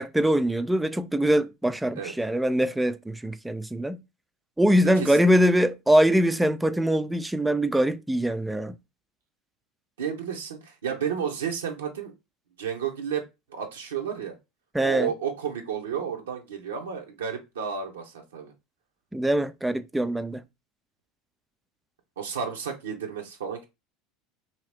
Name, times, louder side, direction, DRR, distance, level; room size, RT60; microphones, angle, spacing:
voice 1, 0.0-4.0 4.6-8.8 14.7-15.1 19.1-20.4, equal, 5° right, 0.3 m, -23 dB
voice 2, 5.0-5.3 10.0-12.1 12.6-13.2 13.5-14.4 14.8-18.5 22.2-23.6, right 7 dB, 85° right, 0.6 m, -32 dB
2.8 x 2.7 x 3.2 m
hypercardioid pair, 80°, 0 cm